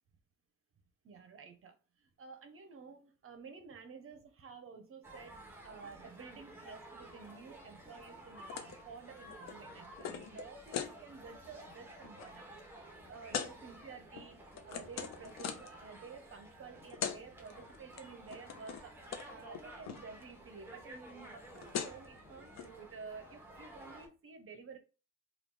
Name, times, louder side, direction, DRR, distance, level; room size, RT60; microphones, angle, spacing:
voice 1, 1.0-12.5 12.7-24.8, right 5 dB, 45° right, 0.7 m, -52 dB
sound 1, 5.0-24.1, right 1 dB, 5° right, 1.0 m, -53 dB
sound 2, 8.5-8.8 9.1-10.9 11.4-11.7 12.0-12.3 13.3-13.5 14.2-15.8 16.6-16.7 16.9-17.2 17.5-18.0 18.3-18.9 19.1-19.3 19.5-20.0 21.3-21.4 21.5-22.1 22.5-22.7, left 8 dB, 65° left, 0.6 m, -40 dB
2.9 x 2.4 x 3.5 m
cardioid pair, 90°, 30 cm